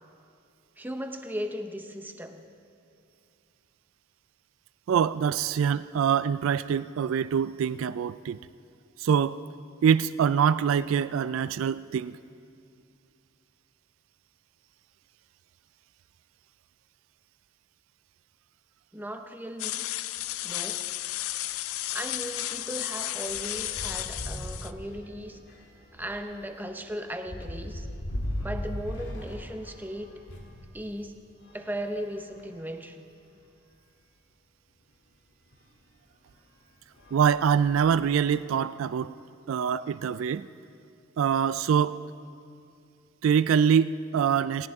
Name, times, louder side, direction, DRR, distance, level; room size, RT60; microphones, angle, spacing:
voice 1, 0.8-2.4 18.9-19.9 20.4-21.0 21.9-25.4 25.9-27.9 28.4-30.2 30.7-31.2 31.5-33.0, equal, 10° right, 6 dB, 0.7 m, -37 dB
voice 2, 4.9-8.4 9.0-9.4 9.8-12.2 37.1-39.1 39.5-40.5 41.2-42.0 43.2-44.7, right 7 dB, 65° right, 14 dB, 0.3 m, -24 dB
sound 1, 19.6-24.7, left 15 dB, 80° left, 0.4 m, -33 dB
sound 2, 20.2-20.4 20.7-20.8 21.2-30.6 31.4-32.7 33.4-33.5 33.7-33.8 35.5-35.7 36.3-36.5 36.9-38.2, equal, 60° left, 1.9 m, -40 dB
18.5 x 17.5 x 3.6 m, 2.5 s
head